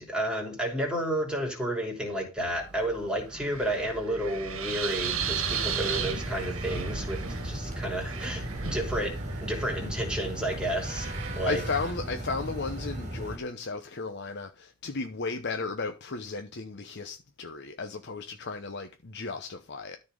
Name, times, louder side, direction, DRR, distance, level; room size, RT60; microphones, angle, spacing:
voice 1, 0.0-11.1 11.3-11.6, right 1 dB, 5° right, 3.0 m, -31 dB
Wind, 2.4-12.5, right 6 dB, 70° right, 1.5 m, -36 dB
sound 1, 5.2-13.4, right 1 dB, 35° right, 3.1 m, -36 dB
voice 2, 11.5-20.0, left 4 dB, 55° left, 0.8 m, -34 dB
13.0 x 4.3 x 5.2 m
head